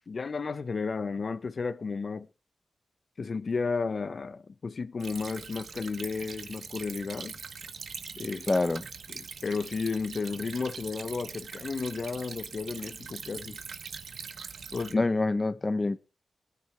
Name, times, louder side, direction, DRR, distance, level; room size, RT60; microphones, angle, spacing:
voice 1, 0.1-2.3 3.2-7.3 8.2-8.5 9.1-13.6 14.7-15.1, left 4 dB, 50° left, 0.8 m, -33 dB
Stream / Trickle dribble, 5.0-14.9, right 5 dB, 75° right, 1.0 m, -42 dB
voice 2, 8.5-8.9 14.9-16.0, left 2 dB, 30° left, 1.1 m, -26 dB
20.5 x 9.7 x 3.4 m
wide cardioid pair, 95°, 0 cm